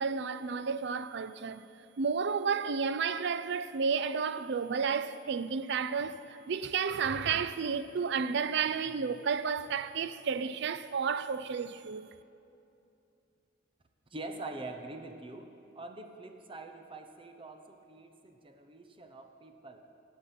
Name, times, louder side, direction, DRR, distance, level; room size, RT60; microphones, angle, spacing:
voice 1, 0.0-1.6 2.0-12.1, right 6 dB, 65° right, 0.4 m, -32 dB
voice 2, 14.1-19.9, right 2 dB, 30° right, 0.8 m, -45 dB
15.0 x 8.6 x 5.8 m
head